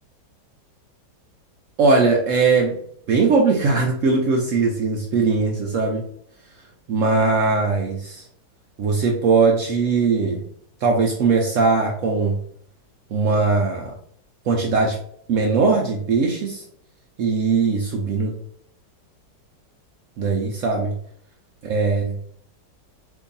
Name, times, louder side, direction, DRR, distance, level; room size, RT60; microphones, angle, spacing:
voice 1, 1.8-2.8 3.1-6.0 6.9-8.2 8.8-10.4 10.8-12.4 13.1-13.9 14.5-15.0 15.3-16.6 17.2-18.3 20.2-20.9 21.6-22.2, right 4 dB, 85° right, 0 dB, 0.7 m, -20 dB
2.9 x 2.7 x 3.8 m, 0.64 s
omnidirectional pair, 2.0 m